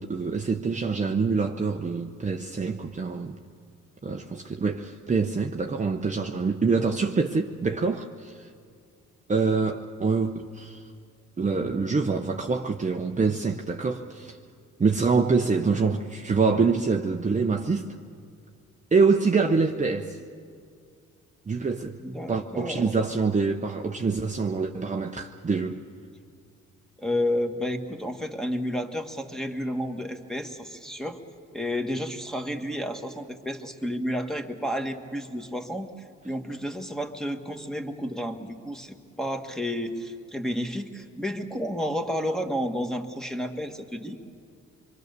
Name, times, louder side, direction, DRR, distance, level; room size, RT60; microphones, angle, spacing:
voice 1, 0.0-3.4 4.0-8.5 9.3-10.8 11.4-14.4 14.8-17.9 18.9-20.2 21.5-21.9 22.3-25.8, right 4 dB, 25° right, 0.9 m, -25 dB
voice 2, 22.0-22.9 27.0-31.2 31.5-35.9 36.2-44.2, equal, ahead, 1.7 m, -31 dB
26.0 x 23.0 x 6.8 m
cardioid pair, 90°, 30 cm